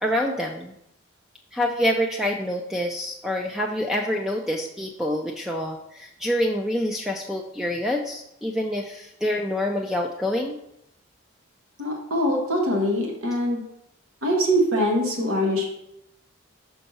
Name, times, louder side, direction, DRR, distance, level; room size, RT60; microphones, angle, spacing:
voice 1, 0.0-0.7 1.5-10.6, left 1 dB, ahead, 1 dB, 0.3 m, -26 dB
voice 2, 11.8-13.6 14.2-15.6, equal, 80° right, 0 dB, 1.5 m, -23 dB
5.6 x 5.5 x 4.1 m, 0.79 s
head